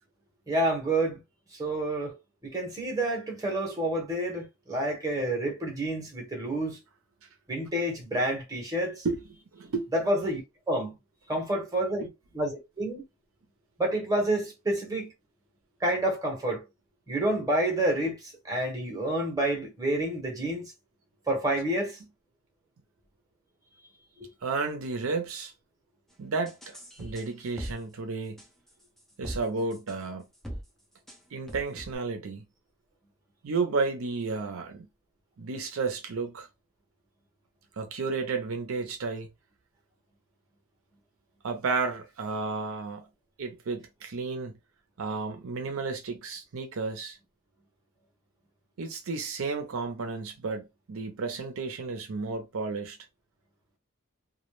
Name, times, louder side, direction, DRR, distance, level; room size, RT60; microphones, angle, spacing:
voice 1, 0.5-1.2 1.6-2.1 2.4-6.8 7.5-9.0 9.9-10.4 10.7-10.9 11.3-13.0 13.8-15.1 15.8-16.6 17.1-18.2 18.4-20.6 21.3-22.0, right 1 dB, 15° right, 0.9 m, -28 dB
voice 2, 9.5-9.9 24.4-25.5 26.2-28.4 29.2-30.2 31.3-32.4 33.4-34.9 35.4-36.5 37.8-39.3 41.4-43.1 43.4-44.5 45.0-47.2 48.8-53.0, right 4 dB, 75° right, 0.5 m, -32 dB
sound 1, 26.4-27.7 28.4-29.4 29.7-29.9 30.3-30.6 31.1-31.2 31.5-32.0, equal, ahead, 0.5 m, -40 dB
2.2 x 2.0 x 3.0 m
head